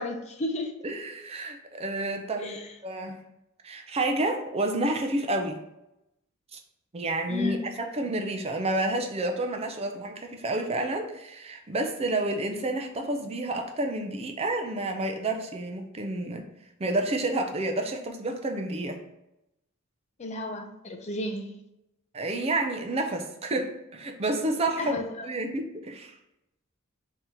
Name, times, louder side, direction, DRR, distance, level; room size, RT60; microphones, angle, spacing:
voice 1, 0.0-0.7 2.4-2.7 7.3-7.7 20.2-21.5 24.8-25.3, left 2 dB, 30° left, 4 dB, 0.5 m, -33 dB
voice 2, 0.8-2.6 2.8-3.2 3.6-5.6 6.5-6.6 6.9-16.4 16.8-19.0 22.1-25.0 25.2-26.1, right 2 dB, 30° right, 4 dB, 0.5 m, -29 dB
3.7 x 2.8 x 4.3 m, 0.88 s
head